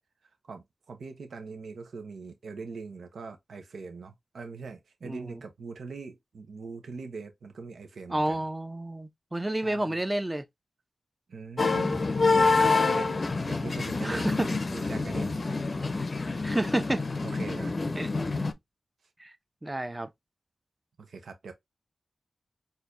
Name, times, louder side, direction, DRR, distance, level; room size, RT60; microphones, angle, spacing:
voice 1, 0.4-8.4 9.6-10.0 11.3-12.1 12.4-15.7 17.2-17.8 21.0-21.5, right 4 dB, 85° right, 0.7 m, -42 dB
voice 2, 5.0-5.4 8.1-10.4 14.0-14.5 16.4-17.0 18.0-18.1 19.2-19.3 19.6-20.1, right 1 dB, 20° right, 0.6 m, -30 dB
sound 1, 11.6-18.5, left 3 dB, 50° left, 0.5 m, -27 dB
4.3 x 2.6 x 2.5 m
cardioid pair, 50°, 0 cm